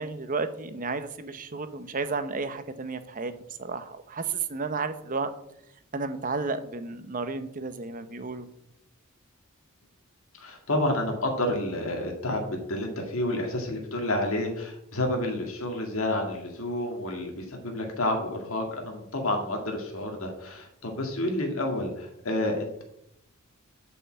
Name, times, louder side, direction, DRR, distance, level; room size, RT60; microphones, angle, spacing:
voice 1, 0.0-3.3 3.6-5.3 5.9-8.5, right 4 dB, 40° right, 11 dB, 0.8 m, -32 dB
voice 2, 10.3-22.8, left 1 dB, 75° left, 2 dB, 1.9 m, -29 dB
8.4 x 5.7 x 7.5 m, 0.79 s
head